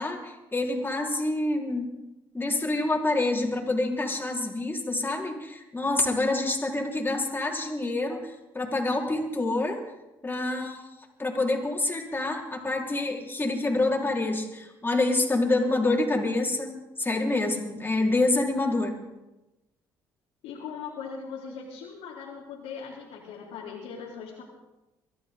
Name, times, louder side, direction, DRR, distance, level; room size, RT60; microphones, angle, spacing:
voice 1, 0.0-1.9 2.3-9.8 10.2-10.9 11.2-19.0, left 2 dB, 20° left, -1 dB, 4.8 m, -27 dB
voice 2, 20.4-24.4, left 6 dB, 85° left, -5 dB, 3.6 m, -39 dB
24.0 x 13.5 x 4.0 m, 1.0 s
supercardioid pair, 65°, 10 cm